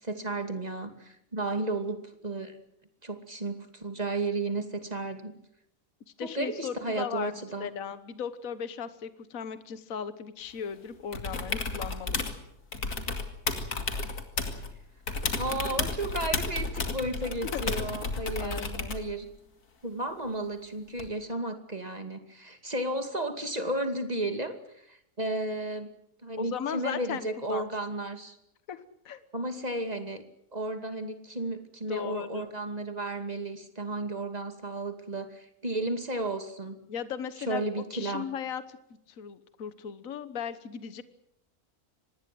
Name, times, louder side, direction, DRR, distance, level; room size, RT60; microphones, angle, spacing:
voice 1, 0.0-2.6 3.0-5.3 6.2-7.7 15.4-19.3 19.8-25.9 26.2-28.4 29.3-30.2 30.5-36.8 37.5-38.3, right 2 dB, 25° right, 7 dB, 2.6 m, -33 dB
voice 2, 6.2-12.3 17.5-17.6 18.4-19.0 26.4-27.2 27.5-27.7 28.7-29.2 31.9-32.5 36.9-37.6 37.9-38.8 39.1-41.0, left 7 dB, 65° left, 13 dB, 1.6 m, -37 dB
sound 1, 11.1-12.4 12.7-14.7 15.1-19.1 21.0-21.1, left 3 dB, 85° left, 2.9 m, -32 dB
25.0 x 20.0 x 7.8 m, 0.76 s
omnidirectional pair, 1.6 m